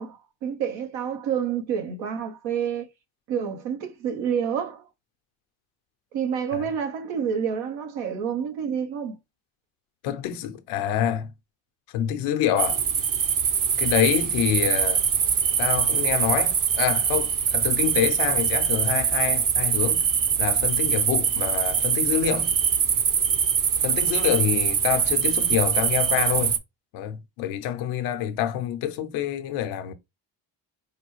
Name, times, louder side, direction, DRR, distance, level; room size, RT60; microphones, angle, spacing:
voice 1, 0.0-2.9 3.3-4.8 6.1-9.2, right 7 dB, 85° right, 0.9 m, -28 dB
voice 2, 10.0-11.3 11.9-12.8 13.8-15.1 15.6-20.1 20.4-22.6 23.8-26.5 26.9-29.9, left 10 dB, 85° left, 0.7 m, -26 dB
sound 1, 12.6-26.6, right 7 dB, 45° right, 0.8 m, -23 dB
4.8 x 2.3 x 3.1 m
supercardioid pair, 60°, 46 cm